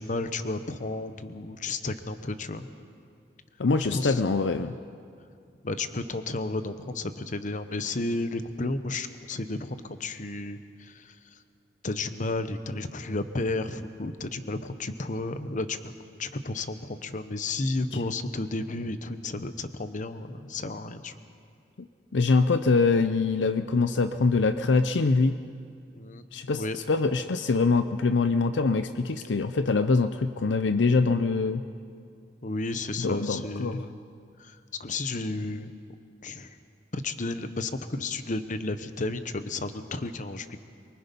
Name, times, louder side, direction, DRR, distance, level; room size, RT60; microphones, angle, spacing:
voice 1, 0.0-2.7 3.8-4.2 5.6-11.4 11.8-15.9 16.2-21.2 25.9-26.2 26.6-26.8 32.4-34.0 34.4-35.7 36.2-36.6 36.9-40.6, left 2 dB, 45° left, 10 dB, 0.9 m, -32 dB
voice 2, 3.6-4.7 22.1-25.4 26.3-26.6 26.9-31.6 33.0-33.8, left 4 dB, 75° left, 10 dB, 0.6 m, -24 dB
23.5 x 23.5 x 5.4 m, 2.3 s
head